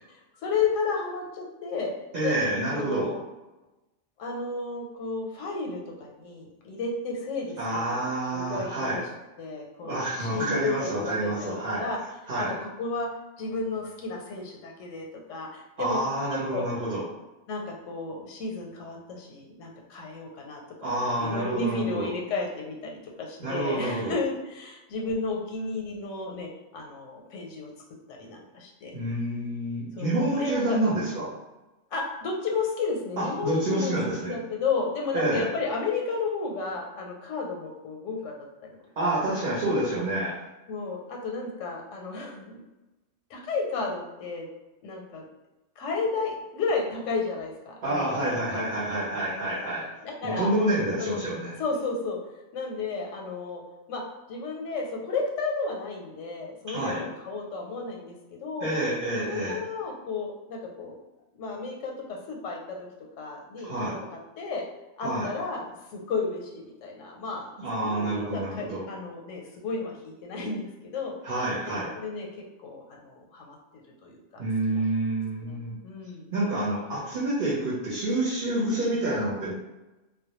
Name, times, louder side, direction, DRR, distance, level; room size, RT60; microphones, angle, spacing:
voice 1, 0.1-1.9 2.2-2.3 2.8-3.2 4.2-8.0 8.3-9.0 9.4-12.0 12.4-13.1 13.4-16.0 16.5-16.6 17.5-27.7 28.1-28.9 29.9-30.8 31.9-38.3 38.6-38.7 39.0-39.2 40.7-42.6 43.3-44.5 44.8-45.2 45.8-48.6 50.0-50.5 51.0-51.2 51.6-52.2 52.5-53.6 53.9-54.0 54.3-58.7 59.2-61.0 61.3-62.8 63.2-63.7 64.4-64.6 65.0-67.5 67.8-71.1 71.6-72.3 72.6-74.2 74.7-74.8 75.4-76.3, left 4 dB, 90° left, 0 dB, 0.9 m, -33 dB
voice 2, 2.1-3.1 7.6-9.0 9.8-11.9 12.3-12.6 15.8-17.0 20.8-22.1 23.4-24.2 28.9-31.3 33.2-34.3 35.1-35.5 39.0-40.4 47.8-49.9 50.2-51.5 56.7-57.0 58.6-59.6 63.6-64.0 65.0-65.3 67.6-68.8 71.2-71.9 74.4-75.8 76.3-79.5, right 1 dB, 55° right, -7 dB, 0.8 m, -28 dB
2.2 x 2.0 x 2.9 m, 1.1 s
omnidirectional pair, 1.2 m